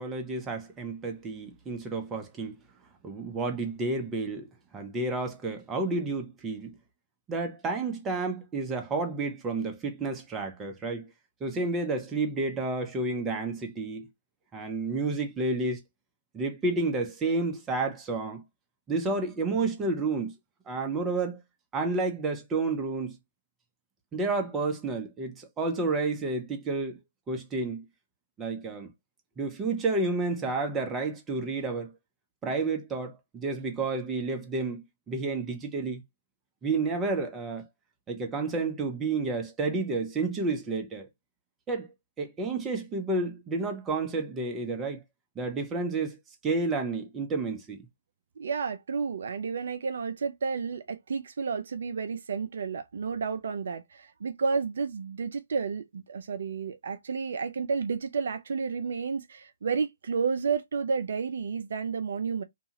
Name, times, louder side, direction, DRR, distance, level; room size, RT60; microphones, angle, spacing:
voice 1, 0.0-2.5 3.0-4.5 4.7-6.7 7.3-11.1 11.4-14.1 14.5-15.8 16.3-18.4 18.9-20.3 20.7-21.4 21.7-23.2 24.1-27.0 27.3-27.8 28.4-28.9 29.4-31.9 32.4-36.0 36.6-37.7 38.1-41.1 41.7-41.9 42.2-45.0 45.4-46.2 46.4-47.9, right 3 dB, 15° right, 0.7 m, -30 dB
voice 2, 48.4-62.4, right 5 dB, 60° right, 0.3 m, -31 dB
2.7 x 2.4 x 2.8 m
figure-of-eight pair, 130°, 0 cm